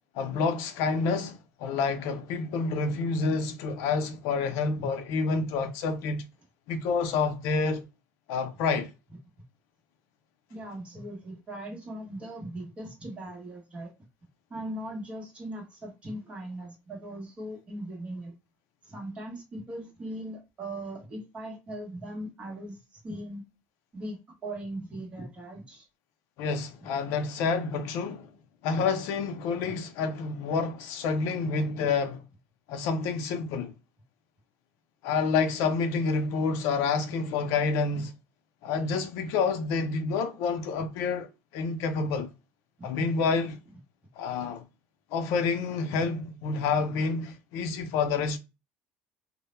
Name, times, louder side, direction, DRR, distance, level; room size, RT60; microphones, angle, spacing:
voice 1, 0.1-6.2 6.7-7.8 8.3-8.9 26.4-28.3 28.6-32.2 32.7-33.7 35.0-38.1 38.6-42.3 42.8-43.6 44.2-44.6 45.1-48.4, left 4 dB, 75° left, 0.5 m, -28 dB
voice 2, 10.5-13.9 14.5-18.3 18.8-23.4 23.9-25.9 29.6-29.7 42.8-43.1 45.9-46.0, right 1 dB, 25° right, 0.9 m, -39 dB
2.1 x 2.0 x 2.9 m
cardioid pair, 175°, 5 cm